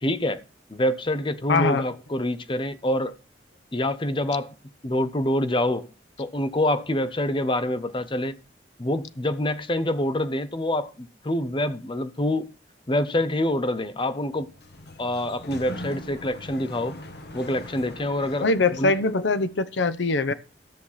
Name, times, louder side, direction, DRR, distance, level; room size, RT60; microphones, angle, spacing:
voice 1, 0.0-0.4 0.7-3.2 3.7-4.5 4.8-5.9 6.2-8.4 8.8-12.4 12.9-14.5 15.0-16.9 17.3-18.5 18.8-19.0, left 1 dB, 30° left, 0.9 m, -26 dB
voice 2, 1.5-1.9 18.4-20.3, left 3 dB, 80° left, 0.8 m, -22 dB
Sliding door, 14.3-19.5, left 1 dB, 60° left, 1.5 m, -42 dB
13.5 x 6.6 x 5.7 m
head